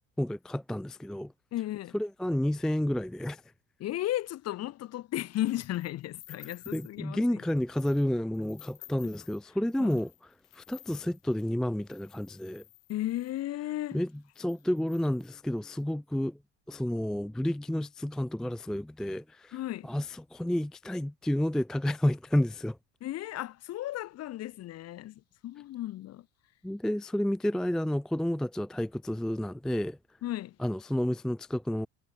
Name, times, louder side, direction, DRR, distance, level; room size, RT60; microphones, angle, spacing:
voice 1, 0.2-1.3 1.9-3.4 6.7-10.1 10.5-12.6 13.9-14.1 14.4-16.4 16.7-22.8 26.6-30.0 30.6-31.9, left 1 dB, ahead, 0.4 m, -30 dB
voice 2, 1.5-1.9 3.8-7.4 9.8-10.0 12.9-14.0 19.5-19.9 23.0-26.3 30.2-30.6, left 14 dB, 45° left, 2.4 m, -35 dB
sound 1, 5.3-7.0 7.5-8.1 8.3-13.4 14.0-14.1 14.3-15.8, left 20 dB, 60° left, 6.1 m, -54 dB
cardioid pair, 155°, 36 cm